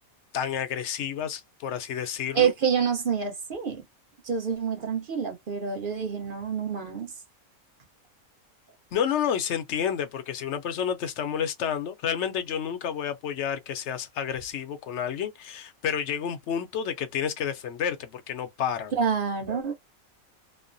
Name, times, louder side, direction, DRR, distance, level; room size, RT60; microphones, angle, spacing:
voice 1, 0.3-2.5 8.9-18.9, left 8 dB, 65° left, 0.8 m, -30 dB
voice 2, 2.3-3.8 4.2-7.1 18.9-19.7, right 7 dB, 45° right, 0.9 m, -27 dB
3.1 x 2.1 x 2.5 m
omnidirectional pair, 1.5 m